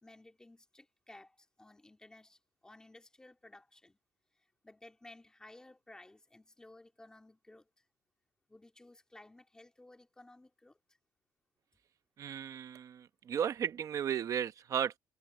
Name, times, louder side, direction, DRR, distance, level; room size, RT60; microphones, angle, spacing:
voice 1, 0.0-4.0 4.6-7.7 8.5-10.8, left 2 dB, 10° left, 2.4 m, -57 dB
voice 2, 12.2-15.0, right 9 dB, 45° right, 1.0 m, -35 dB
cardioid pair, 165°, 8 cm